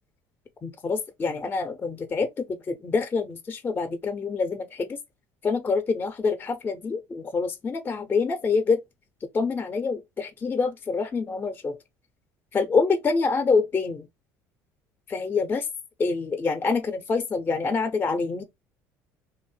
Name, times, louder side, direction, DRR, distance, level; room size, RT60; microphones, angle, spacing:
voice 1, 0.6-5.0 5.4-8.8 9.3-11.8 12.5-14.1 15.1-15.7 16.0-18.4, left 4 dB, 25° left, 0.5 m, -26 dB
2.7 x 2.1 x 2.9 m
supercardioid pair, 95°, 7 cm